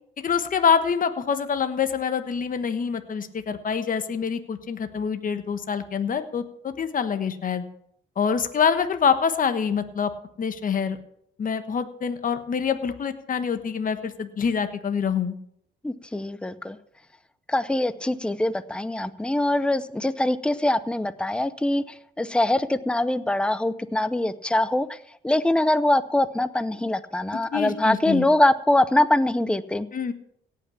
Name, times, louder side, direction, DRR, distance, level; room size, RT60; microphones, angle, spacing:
voice 1, 0.2-7.6 8.2-10.1 10.4-11.0 11.4-15.4 27.5-28.3 29.9-30.1, left 6 dB, 45° left, 9 dB, 1.2 m, -25 dB
voice 2, 15.8-16.8 17.5-21.8 22.2-25.0 25.2-29.9, left 1 dB, 5° left, 14 dB, 0.7 m, -23 dB
17.0 x 5.9 x 7.1 m, 0.72 s
cardioid pair, 90°, 20 cm